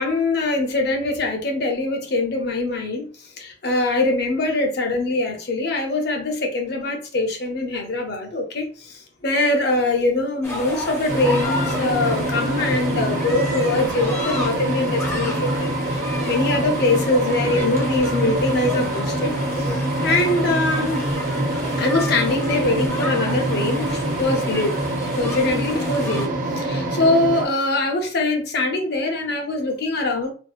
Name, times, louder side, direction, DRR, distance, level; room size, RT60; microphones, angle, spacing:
voice 1, 0.0-3.1 3.4-21.0 21.8-24.8 25.2-30.3, left 2 dB, 55° left, 0.6 m, -23 dB
sound 1, 10.4-26.3, left 1 dB, 15° left, 0.4 m, -32 dB
sound 2, 11.1-27.5, right 1 dB, 45° right, 0.5 m, -25 dB
2.6 x 2.0 x 2.3 m
head